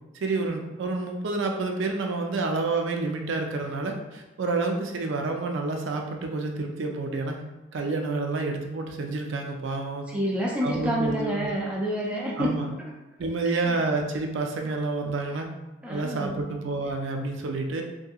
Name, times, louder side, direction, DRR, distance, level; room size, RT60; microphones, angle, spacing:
voice 1, 0.2-7.4 7.7-10.0 10.6-11.5 12.4-12.7 13.2-15.5 15.9-17.8, right 3 dB, 70° right, 3 dB, 0.4 m, -29 dB
voice 2, 10.1-12.6 13.7-13.8 15.8-16.4, equal, 5° right, -3 dB, 0.4 m, -28 dB
2.8 x 2.6 x 2.3 m, 1.0 s
head